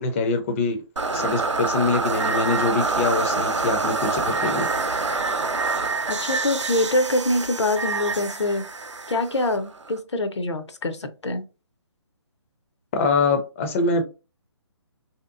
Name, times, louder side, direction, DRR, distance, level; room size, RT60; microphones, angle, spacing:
voice 1, 0.0-0.8 1.1-4.7 12.9-14.0, left 3 dB, 25° left, 0.4 m, -24 dB
sound 1, 1.0-10.0, right 3 dB, 80° right, 0.6 m, -26 dB
voice 2, 6.1-8.6 9.1-11.4, left 2 dB, 70° left, 0.6 m, -24 dB
3.2 x 2.8 x 2.5 m
figure-of-eight pair, 140°, 15 cm